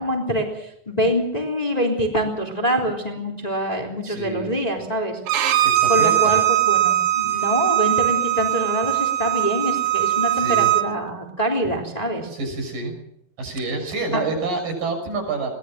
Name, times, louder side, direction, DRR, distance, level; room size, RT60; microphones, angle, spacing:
voice 1, 0.0-5.6 5.9-6.4 6.7-12.3 14.1-14.2, equal, 10° left, 2 dB, 3.1 m, -25 dB
voice 2, 4.0-4.5 5.6-6.4 10.3-10.7 12.3-12.9 13.4-15.6, right 3 dB, 70° right, 4 dB, 7.9 m, -28 dB
Bowed string instrument, 5.3-10.8, right 13 dB, 90° right, 3.6 m, -20 dB
22.5 x 18.5 x 7.5 m, 0.77 s
omnidirectional pair, 4.0 m